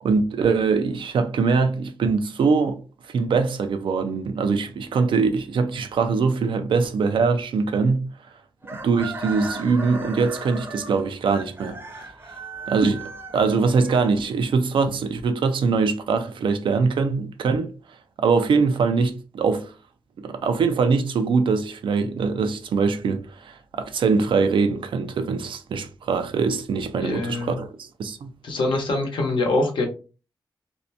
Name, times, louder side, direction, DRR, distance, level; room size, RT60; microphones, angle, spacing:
voice 1, 0.0-2.8 3.1-8.1 8.7-11.8 12.7-17.7 18.2-19.7 20.2-28.3, right 4 dB, 85° right, 0.4 m, -22 dB
Chicken rooster, 8.6-14.6, right 2 dB, 30° right, 0.6 m, -37 dB
voice 2, 27.0-27.6 28.4-29.9, left 2 dB, 80° left, 0.9 m, -24 dB
2.6 x 2.1 x 2.6 m
wide cardioid pair, 90°, 8 cm